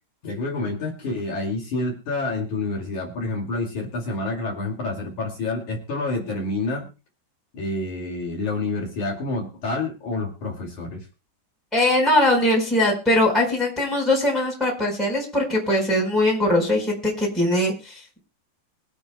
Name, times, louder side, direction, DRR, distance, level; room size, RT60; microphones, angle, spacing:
voice 1, 0.2-6.9 7.5-11.1, left 2 dB, 50° left, 0 dB, 3.4 m, -28 dB
voice 2, 11.7-18.2, left 1 dB, ahead, -3 dB, 4.0 m, -21 dB
24.5 x 8.5 x 2.2 m, 0.32 s
omnidirectional pair, 5.0 m